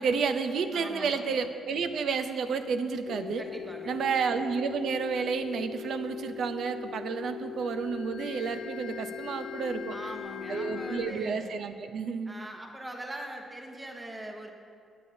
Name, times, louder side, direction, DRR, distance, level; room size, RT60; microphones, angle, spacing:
voice 1, 0.0-3.4 3.9-10.0 10.5-12.3, right 5 dB, 60° right, 8 dB, 0.6 m, -31 dB
voice 2, 0.7-1.3 3.4-4.1 9.9-11.5 12.3-14.5, right 1 dB, 15° right, 1 dB, 1.1 m, -41 dB
sound 1, 3.1-11.1, left 8 dB, 75° left, 0.5 m, -40 dB
18.5 x 8.4 x 2.8 m, 2.3 s
cardioid pair, 150°, 0 cm